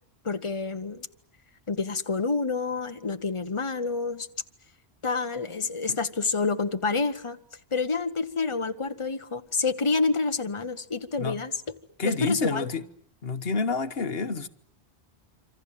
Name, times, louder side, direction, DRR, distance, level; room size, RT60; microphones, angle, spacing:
voice 1, 0.2-1.1 1.7-4.3 5.0-7.4 7.7-11.5 12.0-12.7, left 4 dB, 30° left, 1.3 m, -28 dB
voice 2, 12.0-12.9 13.2-14.5, left 4 dB, 65° left, 1.5 m, -28 dB
27.0 x 26.0 x 7.4 m
omnidirectional pair, 1.1 m